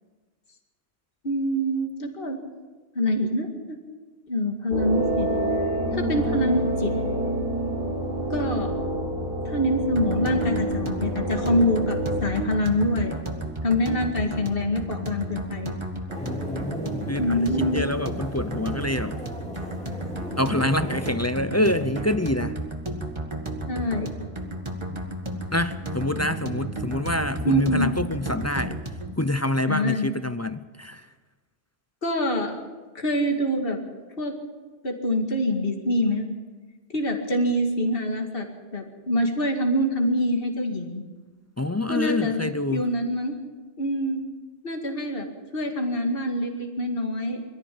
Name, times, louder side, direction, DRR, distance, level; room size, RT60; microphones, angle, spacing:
voice 1, 1.2-2.4 3.0-3.8 4.3-5.3 5.9-6.9 8.3-8.8 9.4-13.2 13.6-15.7 17.2-17.8 23.7-24.1 27.4-27.9 29.7-30.1 32.0-32.7 32.9-33.8 34.2-34.3 34.8-36.3 36.9-38.5 38.7-41.0 41.9-43.4 43.8-44.2 44.6-45.3 45.5-47.4, left 1 dB, 50° left, 2 dB, 2.4 m, -25 dB
sound 1, 4.7-12.2, right 1 dB, 55° right, 4.9 m, -27 dB
sound 2, 10.0-29.2, right 1 dB, 25° right, 1.9 m, -33 dB
sound 3, 16.1-21.1, equal, 5° left, 3.5 m, -38 dB
voice 2, 16.2-19.2 20.4-22.6 25.5-28.8 29.2-31.1 41.6-42.9, left 1 dB, 20° left, 12 dB, 0.4 m, -26 dB
23.0 x 14.0 x 8.6 m, 1.3 s
omnidirectional pair, 1.2 m